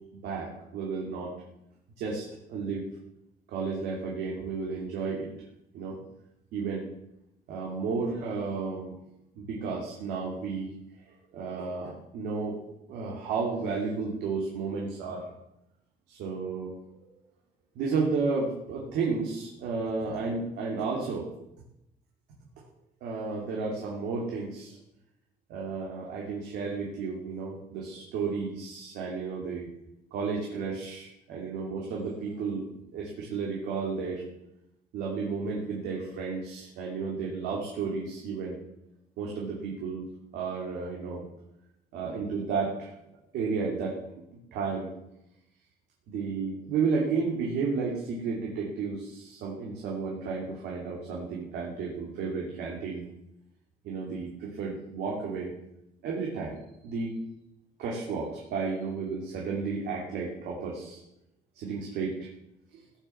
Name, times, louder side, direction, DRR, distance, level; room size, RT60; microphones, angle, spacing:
voice 1, 0.1-1.3 2.0-2.9 3.5-5.3 5.7-6.0 6.5-6.9 7.5-9.0 9.4-10.8 11.3-12.6 12.9-15.3 16.1-17.1 17.7-21.3 23.0-24.8 25.5-29.7 30.1-34.2 34.9-38.6 39.2-40.0 40.3-41.3 41.9-42.9 43.3-44.0 44.5-44.9 46.1-53.1 53.8-55.5 56.0-56.6 56.8-57.1 57.8-61.0 61.5-62.3 62.7-62.8, right 4 dB, 80° right, -2 dB, 2.8 m, -32 dB
16.5 x 6.8 x 7.2 m, 0.86 s
cardioid pair, 110°, 17 cm